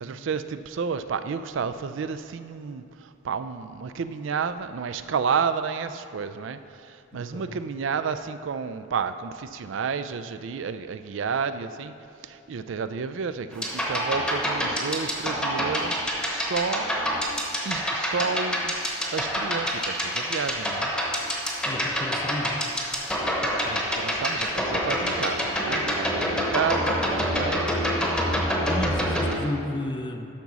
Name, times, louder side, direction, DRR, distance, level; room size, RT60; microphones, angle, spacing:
voice 1, 0.0-11.9 12.2-16.9 17.6-20.9 23.5-27.8, right 6 dB, 60° right, 11 dB, 0.4 m, -31 dB
voice 2, 7.1-7.6 21.6-22.6 28.7-30.3, left 1 dB, 20° left, 5 dB, 0.5 m, -32 dB
sound 1, 13.5-29.3, equal, 5° left, 0.9 m, -27 dB
11.5 x 4.0 x 6.1 m, 2.7 s
head